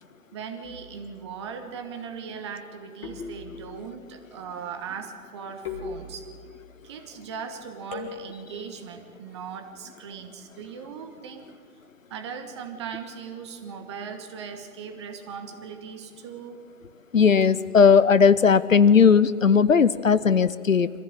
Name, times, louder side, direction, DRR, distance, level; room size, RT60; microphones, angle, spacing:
voice 1, 0.3-6.3 6.8-11.5 12.1-16.6, right 6 dB, 20° right, 7 dB, 1.3 m, -38 dB
sound 1, 0.6-1.2 3.0-4.0 5.6-6.6 7.9-8.6, left 5 dB, 20° left, 2.3 m, -39 dB
voice 2, 17.1-20.9, left 6 dB, 60° left, 16 dB, 0.9 m, -17 dB
25.5 x 15.5 x 9.0 m, 2.1 s
figure-of-eight pair, 140°, 45 cm